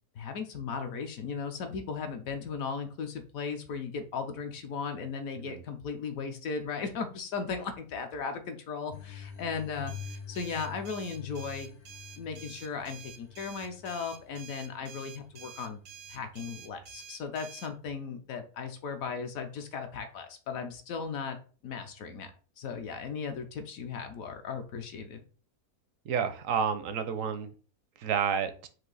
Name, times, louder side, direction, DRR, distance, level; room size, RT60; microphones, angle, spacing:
voice 1, 0.2-11.7 12.2-15.8 16.1-21.4 21.6-22.3 22.6-25.2, left 5 dB, 70° left, 6 dB, 1.0 m, -37 dB
sound 1, 8.9-17.0, left 7 dB, 45° left, 0.5 m, -47 dB
sound 2, 9.9-17.7, right 8 dB, 90° right, 1.3 m, -49 dB
voice 2, 26.1-27.5 28.0-28.7, right 7 dB, 70° right, 10 dB, 0.8 m, -30 dB
4.7 x 2.6 x 3.9 m, 0.38 s
omnidirectional pair, 1.7 m